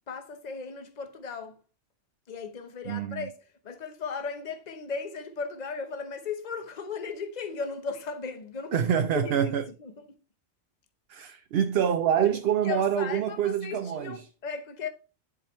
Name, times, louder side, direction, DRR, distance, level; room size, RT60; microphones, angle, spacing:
voice 1, 0.1-1.6 2.3-9.5 9.8-10.0 12.2-12.4 12.6-14.9, left 5 dB, 40° left, 1.0 m, -36 dB
voice 2, 2.9-3.3 8.7-9.6 11.1-14.1, right 9 dB, 65° right, 0.8 m, -26 dB
10.5 x 4.9 x 3.1 m
omnidirectional pair, 1.2 m